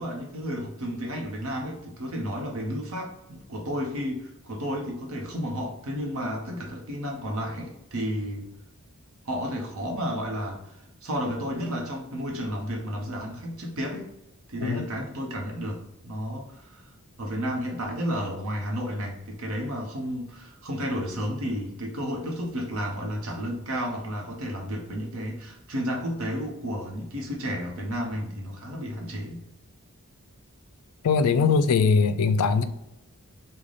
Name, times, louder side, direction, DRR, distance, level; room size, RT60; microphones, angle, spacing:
voice 1, 0.0-8.5 9.3-14.1 14.5-16.9 17.2-29.4, equal, 70° right, 1 dB, 0.8 m, -32 dB
voice 2, 31.0-32.6, left 5 dB, 80° left, 11 dB, 0.3 m, -21 dB
3.8 x 2.2 x 3.2 m, 0.90 s
head